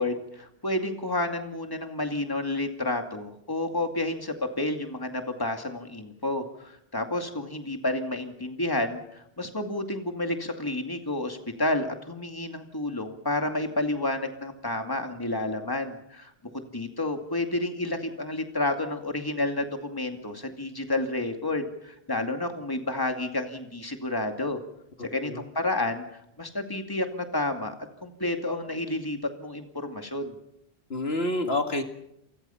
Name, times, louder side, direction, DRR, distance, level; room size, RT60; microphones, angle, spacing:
voice 1, 0.0-24.6 25.0-27.7 28.0-30.4, left 2 dB, 20° left, 5 dB, 2.4 m, -30 dB
voice 2, 25.0-25.4 30.9-31.8, left 2 dB, 70° left, 5 dB, 2.4 m, -28 dB
29.5 x 23.5 x 5.8 m, 0.79 s
omnidirectional pair, 1.1 m